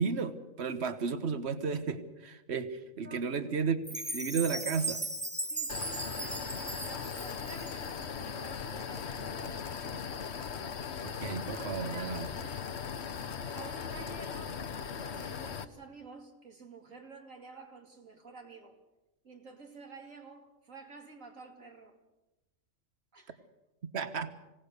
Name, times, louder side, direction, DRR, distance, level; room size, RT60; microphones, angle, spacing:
voice 1, 0.0-5.0 11.0-12.3 23.9-24.3, right 5 dB, 55° right, 1.5 m, -33 dB
voice 2, 3.0-3.5 5.5-10.7 11.5-12.7 13.0-14.6 15.0-18.7 19.2-22.0 23.1-23.5, right 3 dB, 75° right, 3.1 m, -51 dB
Chime, 3.8-8.0, right 2 dB, 5° right, 1.2 m, -37 dB
sound 1, 5.7-15.6, left 6 dB, 55° left, 1.2 m, -39 dB
25.5 x 17.5 x 6.8 m
omnidirectional pair, 1.4 m